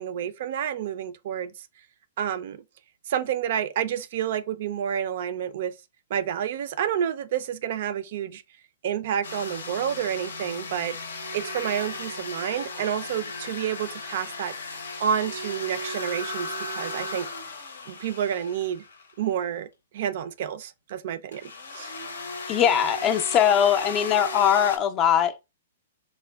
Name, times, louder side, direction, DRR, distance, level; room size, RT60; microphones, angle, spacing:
voice 1, 0.0-1.5 2.2-2.6 3.1-5.7 6.1-8.4 8.8-11.0 11.3-14.5 15.0-17.3 17.9-18.8 19.2-19.7 19.9-21.9, right 9 dB, 55° right, 0.3 m, -29 dB
sound 1, 9.2-19.1 21.3-24.8, left 2 dB, 80° left, 0.6 m, -36 dB
voice 2, 22.5-25.4, left 9 dB, 30° left, 0.4 m, -21 dB
3.3 x 2.1 x 2.2 m
hypercardioid pair, 125°, 0 cm